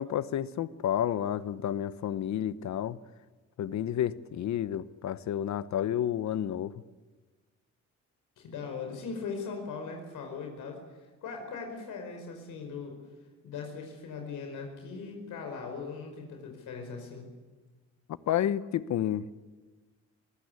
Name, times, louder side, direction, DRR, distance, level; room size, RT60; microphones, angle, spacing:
voice 1, 0.0-3.0 3.6-6.8 18.3-19.3, left 10 dB, 70° left, 16 dB, 1.0 m, -30 dB
voice 2, 8.4-13.0 13.4-17.3, left 5 dB, 85° left, 3 dB, 5.0 m, -39 dB
23.0 x 16.0 x 9.8 m, 1.3 s
cardioid pair, 90°, 30 cm